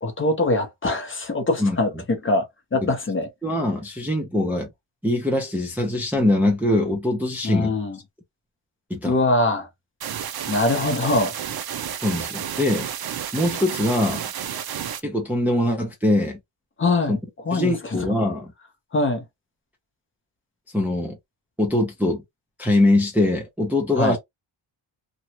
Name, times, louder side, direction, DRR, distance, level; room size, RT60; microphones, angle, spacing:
voice 1, 0.0-3.3 7.4-8.0 9.0-9.7 10.5-11.3 16.8-17.2 17.5-18.2 18.9-19.2 24.0-24.2, left 2 dB, 25° left, 0.8 m, -23 dB
voice 2, 3.4-4.7 5.0-7.7 8.9-9.2 12.0-12.9 13.3-14.2 15.0-16.4 17.1-17.2 17.5-18.5 20.7-21.2 21.6-22.2 22.6-24.2, left 1 dB, 5° right, 0.6 m, -22 dB
sound 1, 10.0-15.0, right 9 dB, 50° right, 0.6 m, -31 dB
3.0 x 2.3 x 2.8 m
wide cardioid pair, 150°, 47 cm